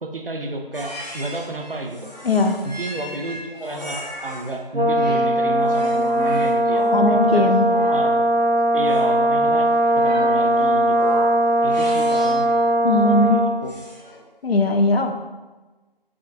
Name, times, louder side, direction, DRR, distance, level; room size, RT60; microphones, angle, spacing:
voice 1, 0.0-2.1 2.6-7.4 7.9-8.3 8.7-11.2 11.6-12.5 13.0-13.7, right 2 dB, 65° right, 3 dB, 0.7 m, -31 dB
sound 1, 0.7-4.5 4.9-12.5 13.7-14.2, equal, 45° right, 0.9 m, -37 dB
voice 2, 2.2-2.6 6.9-7.6 12.8-13.4 14.4-15.2, left 2 dB, 85° left, 5 dB, 0.5 m, -19 dB
Brass instrument, 4.7-13.6, right 1 dB, 85° right, 0.9 m, -19 dB
7.0 x 2.7 x 2.4 m, 1.2 s
figure-of-eight pair, 175°, 30 cm